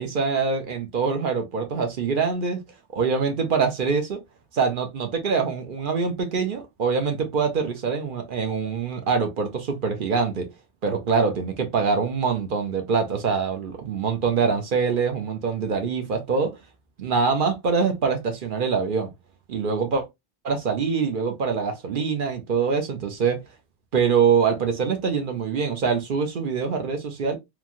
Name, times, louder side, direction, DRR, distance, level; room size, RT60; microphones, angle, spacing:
voice 1, 0.0-2.6 2.9-4.2 4.5-10.5 10.8-16.5 17.0-19.1 19.5-20.0 20.4-23.4 23.9-27.4, right 5 dB, 55° right, 0.8 m, -24 dB
3.1 x 2.3 x 2.4 m
omnidirectional pair, 1.1 m